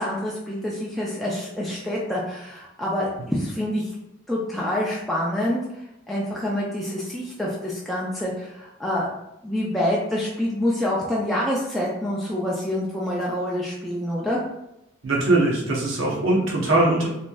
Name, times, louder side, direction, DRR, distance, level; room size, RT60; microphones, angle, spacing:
voice 1, 0.0-3.9 4.3-5.6 6.1-9.1 9.4-14.4, left 1 dB, ahead, -6 dB, 0.3 m, -26 dB
voice 2, 15.0-17.1, right 2 dB, 80° right, -3 dB, 0.7 m, -21 dB
3.0 x 2.5 x 2.2 m, 0.86 s
head